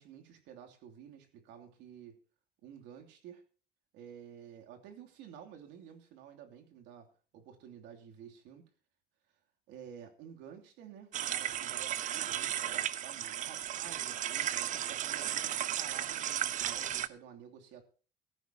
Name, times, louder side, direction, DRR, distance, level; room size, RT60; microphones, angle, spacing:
voice 1, 0.0-2.2 2.6-3.4 3.9-8.7 9.7-17.8, right 8 dB, 90° right, 4 dB, 3.0 m, -52 dB
sound 1, 11.1-17.1, right 11 dB, 45° right, 0.7 m, -35 dB
16.0 x 14.5 x 2.9 m, 0.39 s
cardioid pair, 155°, 18 cm